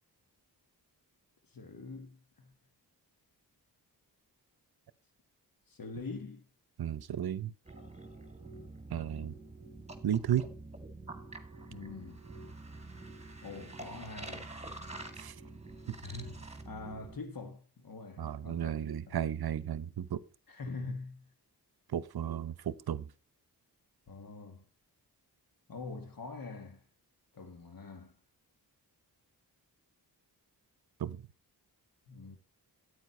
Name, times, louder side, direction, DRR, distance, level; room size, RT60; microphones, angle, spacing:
voice 1, 1.5-2.5 5.7-6.5 11.7-12.3 13.4-14.6 16.0-18.7 20.5-21.3 24.1-24.6 25.7-26.8 27.3-28.2 32.1-32.4, left 3 dB, 55° left, 1.7 m, -44 dB
voice 2, 6.8-7.5 8.9-9.3 10.0-10.5 15.2-15.3 15.9-16.0 18.2-20.2 21.9-23.1 31.0-31.2, right 10 dB, 65° right, 0.8 m, -34 dB
sound 1, 7.6-17.2, right 2 dB, 15° right, 1.9 m, -47 dB
9.2 x 8.9 x 4.2 m
cardioid pair, 65°, 40 cm